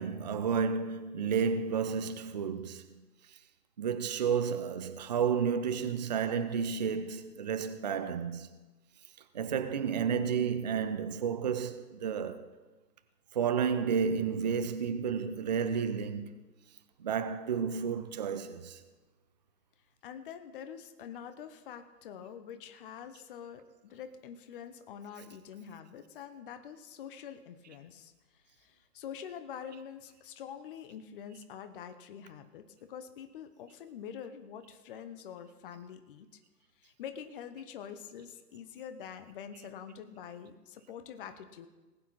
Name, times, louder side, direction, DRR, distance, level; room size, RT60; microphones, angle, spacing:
voice 1, 0.0-3.0 3.8-8.5 9.3-12.4 13.3-16.3 17.0-18.8, right 6 dB, 30° right, 0.5 m, -31 dB
voice 2, 20.0-36.4 36.8-41.7, left 8 dB, 35° left, 0.9 m, -46 dB
19.5 x 8.4 x 4.2 m
figure-of-eight pair, 130°, 49 cm